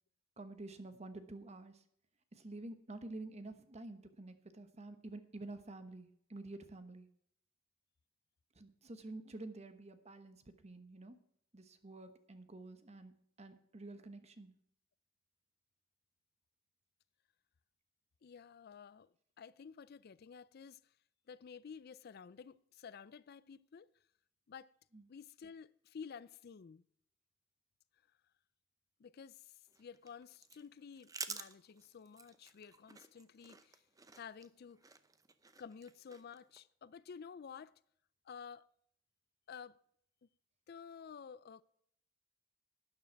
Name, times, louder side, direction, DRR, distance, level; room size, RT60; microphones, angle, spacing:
voice 1, 0.4-1.8 2.3-7.1 8.5-11.2 11.5-14.5 24.9-25.0, right 2 dB, 35° right, 1.1 m, -49 dB
voice 2, 18.2-20.9 21.3-23.9 24.5-24.8 25.1-26.8 29.0-33.8 34.2-34.9 35.6-37.8 38.2-38.7 39.5-39.8 40.7-41.6, left 6 dB, 55° left, 0.4 m, -52 dB
sound 1, 29.7-36.6, right 5 dB, 20° right, 0.7 m, -51 dB
12.5 x 9.4 x 4.6 m
head